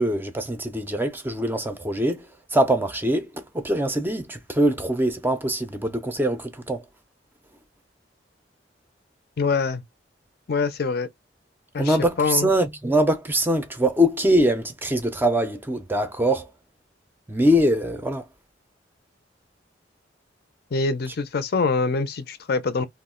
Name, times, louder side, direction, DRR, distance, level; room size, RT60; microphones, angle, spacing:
voice 1, 0.0-2.3 2.5-6.8 11.8-16.5 17.3-18.3, equal, 10° right, 0.4 m, -23 dB
voice 2, 9.4-9.8 10.5-11.1 11.7-12.5 20.7-22.9, left 4 dB, 60° left, 0.5 m, -24 dB
2.3 x 2.0 x 3.6 m
head